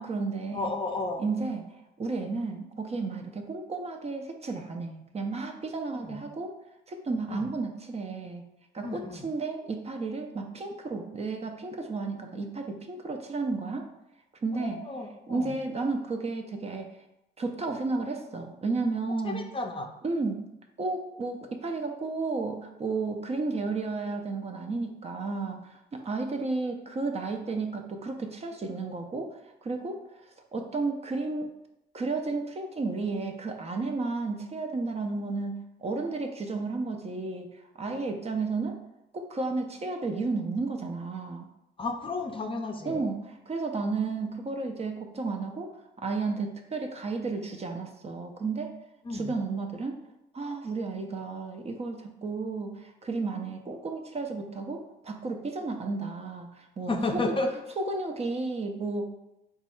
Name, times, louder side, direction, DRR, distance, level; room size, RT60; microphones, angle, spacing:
voice 1, 0.0-0.7 1.2-1.7 2.0-6.5 6.9-8.4 8.7-13.9 14.4-14.9 15.3-16.9 17.4-19.4 20.0-20.5 20.8-30.0 30.5-31.5 31.9-35.5 35.8-37.5 37.8-38.8 39.1-41.5 42.8-48.7 49.1-50.0 50.3-57.4 57.8-59.1, right 3 dB, 30° right, 4 dB, 0.5 m, -32 dB
voice 2, 0.5-1.2 6.0-6.2 7.3-7.5 8.8-9.3 14.5-15.5 19.2-19.9 41.8-43.0 49.0-49.3 56.9-57.5, left 3 dB, 25° left, 3 dB, 0.5 m, -32 dB
4.0 x 2.3 x 4.3 m, 0.89 s
cardioid pair, 90°, 20 cm